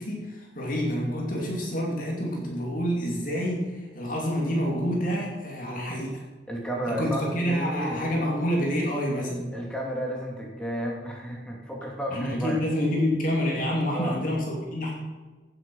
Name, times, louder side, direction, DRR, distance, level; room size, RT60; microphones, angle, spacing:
voice 1, 0.0-6.2 6.9-9.5 12.1-14.9, equal, 45° left, -2 dB, 2.7 m, -28 dB
voice 2, 6.5-8.0 9.5-12.6 13.9-14.2, right 1 dB, 5° left, -1 dB, 2.6 m, -32 dB
16.5 x 7.7 x 5.6 m, 1.3 s
head